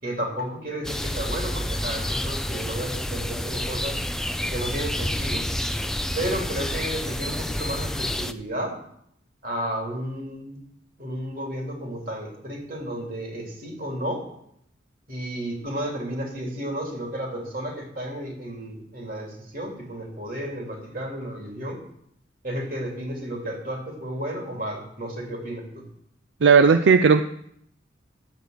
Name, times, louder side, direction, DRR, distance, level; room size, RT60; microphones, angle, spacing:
voice 1, 0.0-4.0 4.5-5.5 6.2-8.7 9.4-10.6 11.0-14.2 15.1-21.8 22.4-25.8, right 1 dB, 50° right, 0 dB, 3.1 m, -32 dB
sound 1, 0.8-8.3, left 1 dB, 5° left, 0.3 m, -29 dB
voice 2, 26.4-27.2, right 5 dB, 75° right, 10 dB, 0.5 m, -15 dB
11.0 x 8.2 x 6.5 m, 0.72 s
head